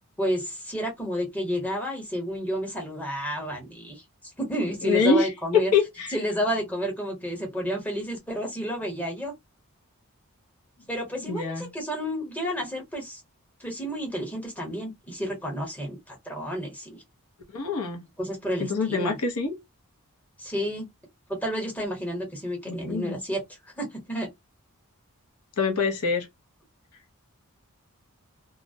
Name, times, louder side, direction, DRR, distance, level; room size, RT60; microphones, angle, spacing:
voice 1, 0.2-4.0 4.4-5.7 6.1-9.3 10.9-13.2 13.6-17.0 18.2-19.2 20.4-20.9 21.3-23.4 23.8-24.3, equal, 5° left, 0.8 m, -31 dB
voice 2, 4.8-5.3 5.7-6.2 11.2-11.7 17.5-18.0 18.6-19.6 22.7-23.2 25.6-26.3, left 4 dB, 90° left, 0.7 m, -25 dB
2.4 x 2.0 x 2.6 m
head